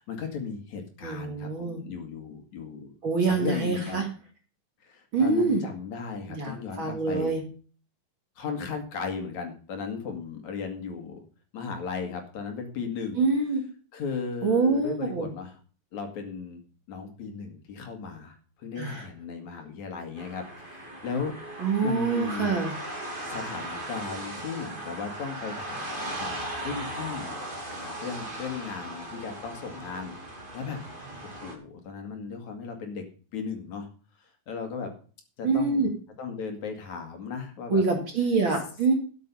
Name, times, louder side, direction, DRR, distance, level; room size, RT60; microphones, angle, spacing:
voice 1, 0.0-2.9 3.2-4.1 4.8-7.3 8.4-11.2 11.5-13.3 13.9-15.6 15.9-16.6 16.9-22.6 23.2-26.3 26.6-30.1 30.5-30.8 31.2-33.0 33.3-33.9 34.2-34.9 35.4-35.9 36.2-37.8, left 5 dB, 60° left, 4 dB, 3.2 m, -36 dB
voice 2, 1.0-1.8 3.0-4.1 5.1-5.6 6.3-7.4 13.2-13.6 14.4-15.3 18.8-19.1 21.6-22.7 35.4-35.9 37.7-38.9, right 4 dB, 40° right, 2 dB, 2.5 m, -25 dB
sound 1, 20.1-31.5, right 1 dB, 15° right, 2.1 m, -38 dB
13.0 x 7.6 x 5.5 m, 0.39 s
omnidirectional pair, 3.9 m